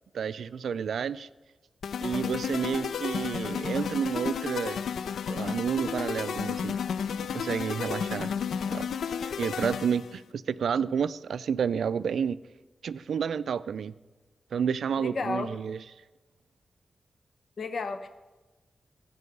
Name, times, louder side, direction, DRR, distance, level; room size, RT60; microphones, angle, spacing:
voice 1, 0.1-1.3 2.0-4.8 5.3-6.8 7.3-8.3 8.7-8.9 9.2-12.4 12.8-13.9 14.5-15.8, right 7 dB, 85° right, 0.3 m, -30 dB
sound 1, 1.8-10.2, left 7 dB, 90° left, 0.3 m, -32 dB
voice 2, 7.9-8.2 15.0-15.5 17.6-18.1, left 4 dB, 65° left, 0.9 m, -33 dB
15.5 x 5.5 x 7.9 m
cardioid pair, 60°, 0 cm